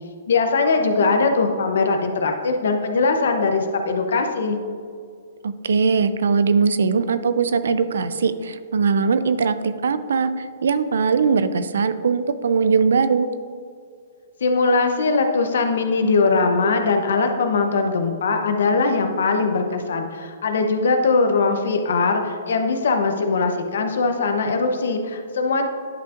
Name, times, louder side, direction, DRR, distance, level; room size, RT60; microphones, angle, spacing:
voice 1, 0.3-4.6 14.4-25.6, left 4 dB, 75° left, 5 dB, 0.8 m, -21 dB
voice 2, 5.4-13.3, right 5 dB, 75° right, 12 dB, 0.4 m, -20 dB
10.5 x 5.7 x 2.5 m, 2.1 s
hypercardioid pair, 130°, 0 cm